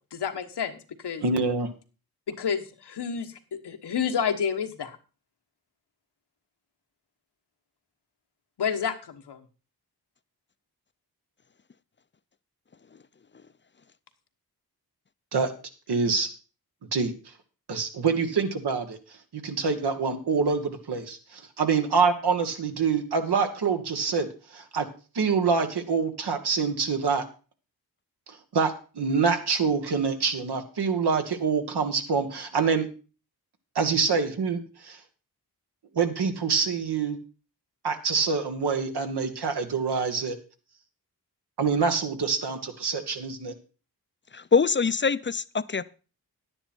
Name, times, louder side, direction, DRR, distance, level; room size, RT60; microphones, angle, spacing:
voice 1, 0.1-1.2 2.3-3.4 3.6-5.0 8.6-9.4, left 7 dB, 85° left, 6 dB, 1.3 m, -29 dB
voice 2, 1.2-1.7 15.3-15.5 15.9-16.3 16.9-17.1 17.7-19.0 19.3-24.9 25.1-27.2 28.5-32.9 33.7-35.0 35.9-37.2 37.8-40.4 41.6-43.5, right 5 dB, 80° right, 6 dB, 1.7 m, -26 dB
voice 3, 44.3-45.9, left 5 dB, 30° left, 16 dB, 0.5 m, -24 dB
10.5 x 9.8 x 4.4 m, 0.36 s
cardioid pair, 60°, 39 cm